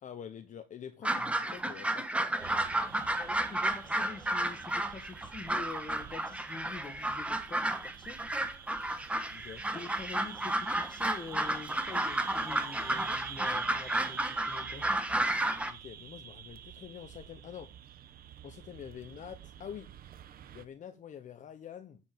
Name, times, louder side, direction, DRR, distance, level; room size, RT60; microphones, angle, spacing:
voice 1, 0.0-2.1 9.3-9.6 15.6-17.7 18.4-19.9 20.5-22.0, left 8 dB, 50° left, 1.1 m, -46 dB
sound 1, 1.0-15.7, right 1 dB, 5° right, 1.3 m, -32 dB
sound 2, 2.4-20.6, right 9 dB, 60° right, 1.1 m, -48 dB
voice 2, 3.2-8.2 9.7-14.8, left 4 dB, 25° left, 1.8 m, -46 dB
9.3 x 5.4 x 6.9 m
cardioid pair, 110°, 17 cm